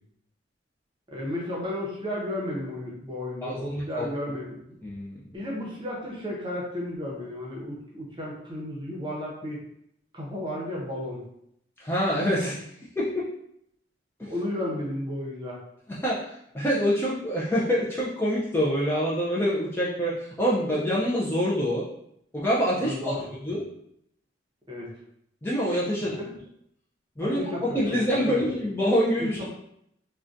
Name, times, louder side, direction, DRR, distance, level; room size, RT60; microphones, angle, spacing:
voice 1, 1.1-4.8 5.3-9.6 10.1-11.2 14.3-15.6 22.8-23.3 24.7-25.0 26.1-26.3 27.2-28.4 29.2-29.4, left 1 dB, 25° right, -3 dB, 0.7 m, -33 dB
voice 2, 3.4-4.1 4.8-5.2 11.8-12.7 13.0-13.3 14.2-14.3 15.9-21.8 22.3-23.1 23.4-23.6 25.4-26.1 27.2-27.4 27.7-29.4, equal, 10° left, -6 dB, 0.4 m, -26 dB
3.7 x 2.2 x 2.5 m, 0.74 s
head